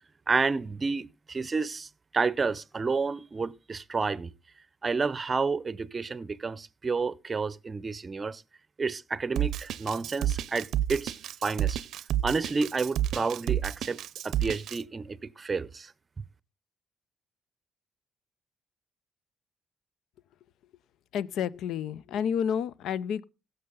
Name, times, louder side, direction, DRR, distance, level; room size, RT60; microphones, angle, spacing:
voice 1, 0.3-1.9 2.1-4.3 4.8-8.4 8.8-11.2 11.4-11.8 12.2-15.9, right 4 dB, 35° right, 0.7 m, -30 dB
Drum kit, 9.4-14.8, right 11 dB, 75° right, 0.5 m, -30 dB
voice 2, 21.1-23.2, left 8 dB, 75° left, 0.5 m, -30 dB
16.5 x 6.7 x 3.8 m
supercardioid pair, 65°, 0 cm